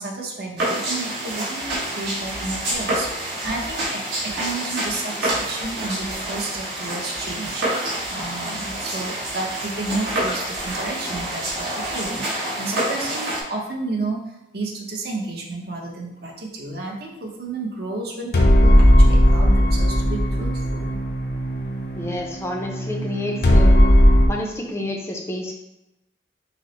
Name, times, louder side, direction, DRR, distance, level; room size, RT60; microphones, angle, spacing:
voice 1, 0.0-21.0, right 3 dB, 55° right, 0 dB, 0.7 m, -32 dB
sound 1, 0.6-13.4, right 1 dB, 70° right, 1.2 m, -27 dB
sound 2, 18.3-24.3, equal, 55° left, 0.6 m, -16 dB
voice 2, 22.0-23.8 24.3-25.5, left 1 dB, 15° left, 0 dB, 0.4 m, -29 dB
5.9 x 2.0 x 3.0 m, 0.95 s
head